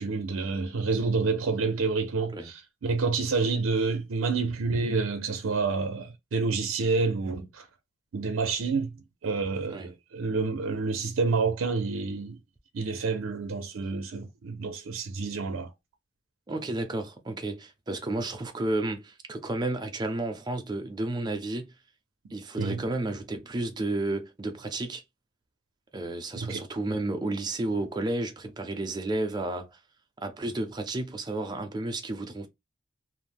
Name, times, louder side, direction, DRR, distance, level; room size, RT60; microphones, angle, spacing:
voice 1, 0.0-7.7 8.1-8.9 9.2-12.4 12.7-15.7 22.6-22.8 26.3-26.6, right 4 dB, 80° right, 0.5 m, -28 dB
voice 2, 16.5-21.7 22.3-25.0 25.9-29.8 30.2-32.5, right 2 dB, 20° right, 0.4 m, -32 dB
2.5 x 2.0 x 3.3 m
head